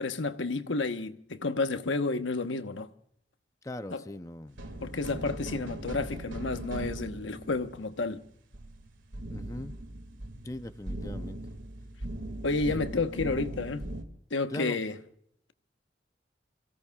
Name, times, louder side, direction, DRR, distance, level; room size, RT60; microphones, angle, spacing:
voice 1, 0.0-2.9 3.9-4.0 4.8-8.2 12.4-13.9 14.3-14.9, left 3 dB, 85° left, 1.1 m, -31 dB
voice 2, 3.6-5.4 9.3-9.8 10.4-11.4 14.5-14.8, left 1 dB, 15° left, 0.5 m, -41 dB
sound 1, 4.5-14.0, right 1 dB, 90° right, 2.2 m, -39 dB
28.5 x 17.0 x 2.4 m
head